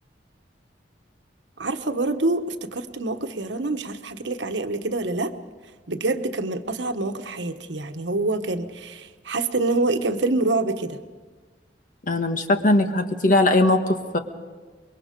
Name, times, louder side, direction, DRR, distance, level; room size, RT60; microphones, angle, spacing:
voice 1, 1.6-5.3 5.9-11.0, right 2 dB, 85° right, 8 dB, 1.2 m, -26 dB
voice 2, 12.1-14.2, left 2 dB, 50° left, 7 dB, 1.5 m, -20 dB
25.5 x 22.5 x 5.2 m, 1.4 s
head